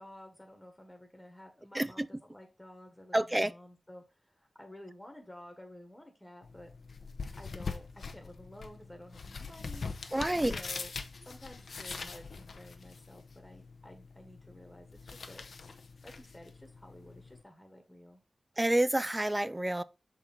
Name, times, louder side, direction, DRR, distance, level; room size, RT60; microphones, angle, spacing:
voice 1, 0.0-6.7 7.3-10.9 11.2-15.4 16.0-18.2, left 1 dB, 10° left, 1.4 m, -52 dB
voice 2, 1.7-2.1 3.1-3.5 10.1-10.6 18.6-19.8, right 1 dB, 15° right, 0.4 m, -28 dB
sound 1, 6.4-17.4, left 4 dB, 75° left, 0.8 m, -43 dB
6.5 x 4.4 x 3.8 m
wide cardioid pair, 95°, 0 cm